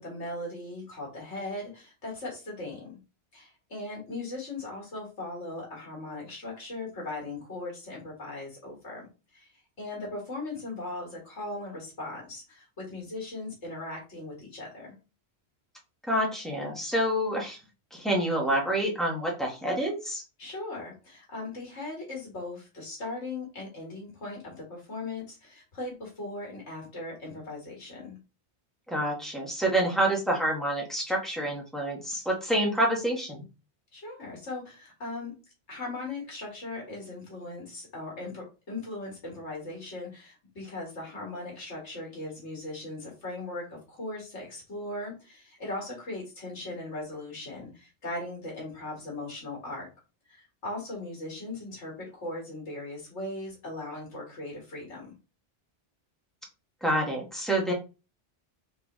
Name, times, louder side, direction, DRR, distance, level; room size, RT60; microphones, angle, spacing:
voice 1, 0.0-3.0 3.3-9.1 9.3-9.5 9.8-14.9 20.4-28.2 33.9-35.3 35.7-49.9 50.3-55.1, left 2 dB, 80° left, -2 dB, 2.1 m, -38 dB
voice 2, 16.1-17.6 17.9-20.2 28.9-33.4 56.8-57.7, right 1 dB, ahead, -1 dB, 1.2 m, -27 dB
4.0 x 3.5 x 3.0 m, 0.31 s
omnidirectional pair, 1.2 m